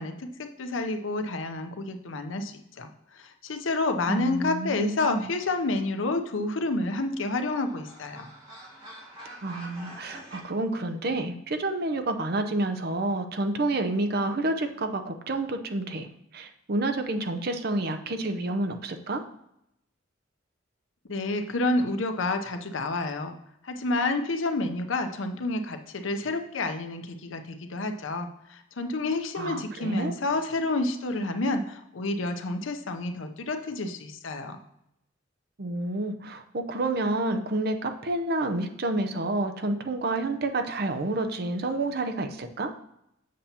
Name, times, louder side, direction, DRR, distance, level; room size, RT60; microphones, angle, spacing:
voice 1, 0.0-2.9 3.2-8.3 21.1-23.3 23.6-34.6, left 2 dB, 80° left, 6 dB, 0.7 m, -29 dB
voice 2, 4.1-5.3 9.4-19.2 29.4-30.1 35.6-42.7, right 2 dB, 50° right, 7 dB, 0.6 m, -29 dB
sound 1, 6.6-10.4, right 1 dB, 30° right, 2.6 m, -47 dB
7.5 x 6.7 x 2.9 m, 0.79 s
head